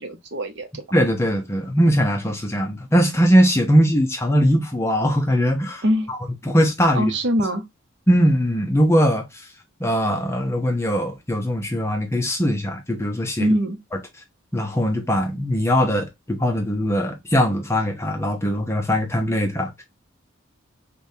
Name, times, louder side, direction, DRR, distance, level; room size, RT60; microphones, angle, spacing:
voice 1, 0.0-0.8 5.8-6.1 6.9-7.6 13.4-13.8, equal, 55° right, 0.7 m, -23 dB
voice 2, 0.9-6.2 6.4-7.1 8.1-9.4 9.8-13.5 14.5-19.8, equal, 10° left, 0.6 m, -20 dB
5.0 x 2.3 x 2.6 m
head